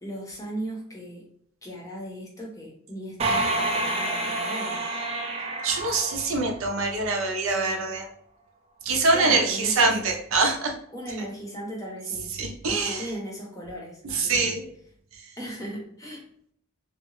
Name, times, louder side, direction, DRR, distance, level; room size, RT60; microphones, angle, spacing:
voice 1, 0.0-1.2 1.6-4.8 9.1-9.9 10.9-12.3 12.6-14.5 15.4-16.2, right 1 dB, 15° left, -1 dB, 0.7 m, -37 dB
sound 1, 3.2-6.9, right 2 dB, 30° right, 0.3 m, -28 dB
voice 2, 5.6-8.1 8.8-10.7 12.4-13.0 14.1-14.6, right 3 dB, 75° right, 2 dB, 0.6 m, -24 dB
2.8 x 2.1 x 2.9 m, 0.66 s
head